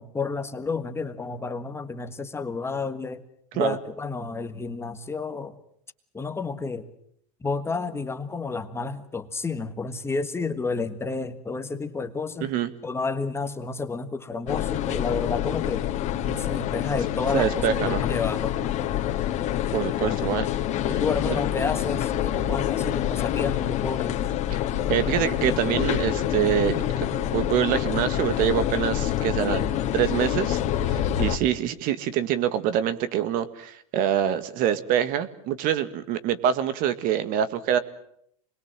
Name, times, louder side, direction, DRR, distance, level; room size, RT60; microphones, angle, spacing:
voice 1, 0.0-3.2 3.5-5.5 6.1-6.9 7.4-12.5 12.8-15.9 16.2-18.6 20.0-20.4 20.8-24.2, left 4 dB, 15° left, 8 dB, 1.5 m, -31 dB
voice 2, 12.4-12.7 17.3-18.0 19.7-20.5 21.3-21.4 24.9-37.8, right 10 dB, 50° right, 13 dB, 1.8 m, -25 dB
sound 1, 14.5-31.4, left 11 dB, 40° left, 2.4 m, -26 dB
25.5 x 21.5 x 7.5 m, 0.69 s
supercardioid pair, 115°, 18 cm